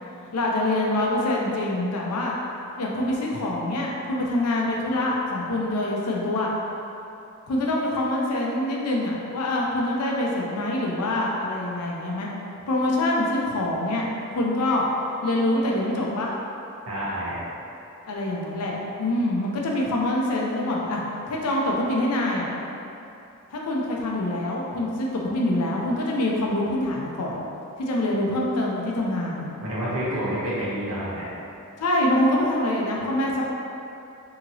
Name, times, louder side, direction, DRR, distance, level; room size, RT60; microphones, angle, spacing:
voice 1, 0.3-2.3 2.8-6.5 7.5-12.3 12.7-14.9 15.2-16.3 18.1-21.0 21.3-22.5 23.5-27.4 27.8-29.5 31.8-33.4, left 1 dB, 85° left, -2 dB, 0.5 m, -25 dB
voice 2, 16.9-17.4 29.6-31.3, equal, 75° right, -8 dB, 0.9 m, -28 dB
2.8 x 2.8 x 2.6 m, 2.8 s
head